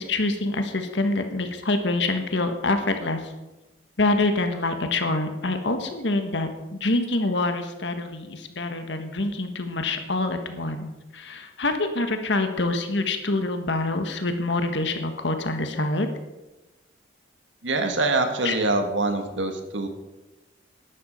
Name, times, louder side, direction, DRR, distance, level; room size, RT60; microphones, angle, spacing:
voice 1, 0.0-3.3 4.0-10.9 11.1-16.1 18.4-18.5, left 2 dB, 70° left, 6 dB, 1.5 m, -26 dB
voice 2, 17.6-19.9, right 2 dB, 85° right, 5 dB, 1.8 m, -24 dB
12.0 x 10.5 x 5.5 m, 1.0 s
head